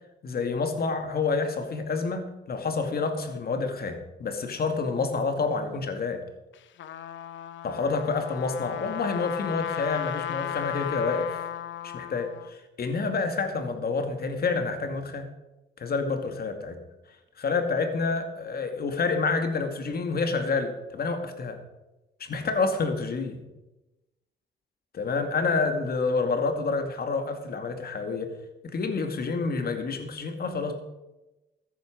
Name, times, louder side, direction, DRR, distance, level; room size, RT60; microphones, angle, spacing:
voice 1, 0.2-6.2 7.6-11.5 11.8-15.3 15.8-16.8 17.4-21.6 22.2-23.4 24.9-28.3 28.6-30.7, left 4 dB, 50° left, 6 dB, 2.3 m, -28 dB
Trumpet, 6.5-12.5, left 11 dB, 70° left, 0.9 m, -35 dB
13.5 x 10.5 x 5.2 m, 1.0 s
cardioid pair, 90°, 20 cm